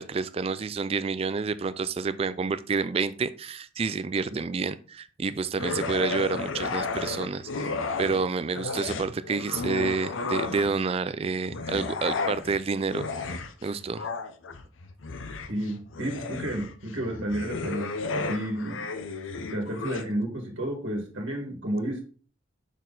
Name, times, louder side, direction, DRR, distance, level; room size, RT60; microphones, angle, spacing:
voice 1, 0.0-13.4 13.6-14.1, right 4 dB, 30° right, 14 dB, 0.3 m, -29 dB
sound 1, 5.6-8.2 8.5-10.9 11.4-20.0, left 3 dB, 90° left, 0.7 m, -33 dB
voice 2, 15.5-18.9 19.5-22.0, right 1 dB, 85° right, 0 dB, 1.7 m, -31 dB
6.3 x 4.2 x 3.9 m, 0.40 s
head